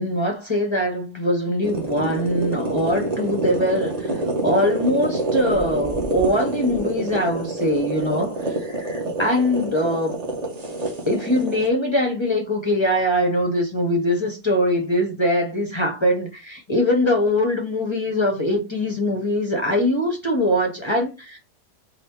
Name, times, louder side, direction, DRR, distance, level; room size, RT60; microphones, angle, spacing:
voice 1, 0.0-10.2 11.1-21.4, left 1 dB, 35° left, 0.4 m, -22 dB
sound 1, 1.6-11.7, right 2 dB, 35° right, 0.7 m, -27 dB
4.0 x 2.1 x 4.3 m
omnidirectional pair, 1.8 m